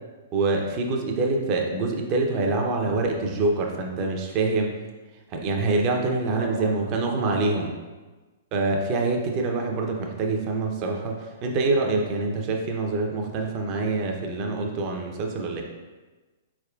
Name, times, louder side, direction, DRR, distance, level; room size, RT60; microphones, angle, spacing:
voice 1, 0.3-4.7 5.3-7.7 8.5-15.6, right 3 dB, 35° right, 2 dB, 0.6 m, -25 dB
voice 2, 6.3-7.7, right 2 dB, 85° right, 1 dB, 0.5 m, -39 dB
4.1 x 3.5 x 2.3 m, 1.2 s
hypercardioid pair, 125°, 0 cm